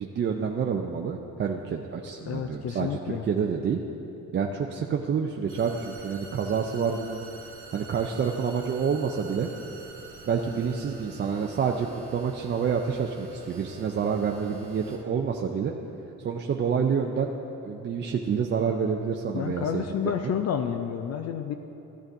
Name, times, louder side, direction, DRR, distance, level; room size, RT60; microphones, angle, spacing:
voice 1, 0.0-3.8 4.3-7.2 7.7-9.5 10.3-15.7 16.2-17.3 17.6-19.9 20.2-20.3, right 6 dB, 35° right, 1 dB, 0.5 m, -28 dB
voice 2, 2.3-3.2 19.3-21.5, left 8 dB, 50° left, 6 dB, 0.5 m, -30 dB
sound 1, 5.5-15.0, right 5 dB, 55° right, 1.6 m, -47 dB
14.0 x 9.8 x 2.6 m, 2.9 s
cardioid pair, 125°, 32 cm